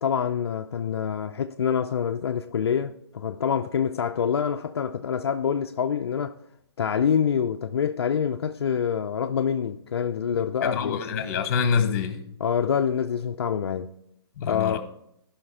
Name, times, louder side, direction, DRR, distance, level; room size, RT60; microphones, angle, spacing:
voice 1, 0.0-6.4 6.8-11.0 12.4-13.9 14.4-14.8, left 7 dB, 70° left, 0.5 m, -26 dB
voice 2, 10.6-12.3 14.4-14.8, left 6 dB, 35° left, 1.2 m, -26 dB
13.0 x 5.7 x 4.2 m
hypercardioid pair, 160°, 14 cm